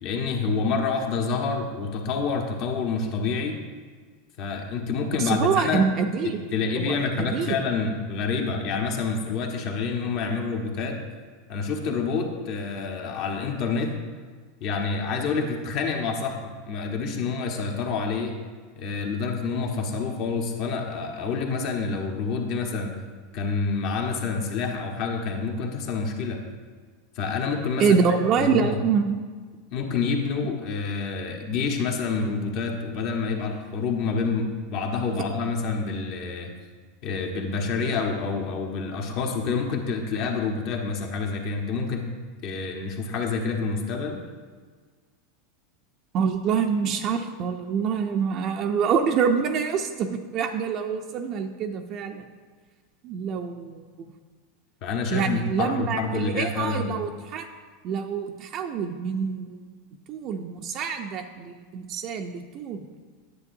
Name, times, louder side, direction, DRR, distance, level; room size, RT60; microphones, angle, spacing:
voice 1, 0.0-3.6 4.4-5.9 6.5-11.0 11.5-13.9 14.6-18.4 18.7-22.9 23.3-26.4 27.1-28.0 28.4-28.7 29.7-36.5 37.0-42.0 42.4-44.2 54.8-57.0, left 4 dB, 55° left, 2 dB, 1.3 m, -28 dB
voice 2, 5.2-6.4 6.8-7.6 27.8-29.2 46.1-52.2 53.0-54.1 55.1-57.5 57.8-59.6 60.1-62.9, right 6 dB, 45° right, 5 dB, 0.5 m, -26 dB
9.8 x 7.5 x 2.7 m, 1.5 s
hypercardioid pair, 90°, 0 cm